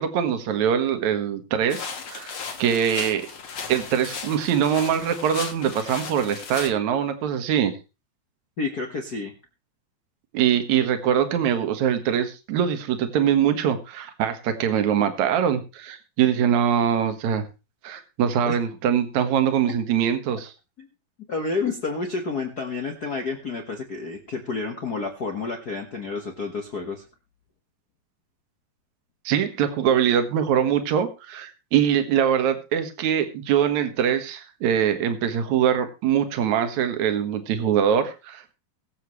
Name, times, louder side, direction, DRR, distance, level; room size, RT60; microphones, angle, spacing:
voice 1, 0.0-2.3 2.6-3.3 3.7-7.7 10.3-17.4 17.8-20.5 29.2-38.5, right 9 dB, 60° right, 8 dB, 2.5 m, -23 dB
sound 1, 1.7-6.7, left 5 dB, 45° left, 2.0 m, -36 dB
voice 2, 8.6-9.3 18.5-18.6 20.8-20.9 21.3-27.0, left 4 dB, 85° left, 3 dB, 0.8 m, -30 dB
22.0 x 7.7 x 3.2 m, 0.30 s
omnidirectional pair, 4.3 m